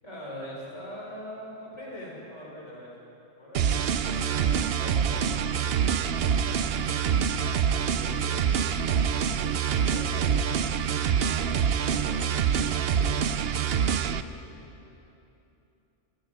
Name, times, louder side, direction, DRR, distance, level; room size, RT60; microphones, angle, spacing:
voice 1, 0.0-3.0 3.4-5.6 13.8-14.7, equal, 65° left, -5 dB, 5.4 m, -42 dB
sound 1, 3.5-14.2, right 7 dB, 60° right, 0.8 m, -26 dB
voice 2, 6.3-7.3 7.9-8.8 9.5-10.8 11.9-13.1, equal, 10° left, -7 dB, 6.7 m, -48 dB
28.0 x 19.5 x 5.0 m, 2.9 s
omnidirectional pair, 1.3 m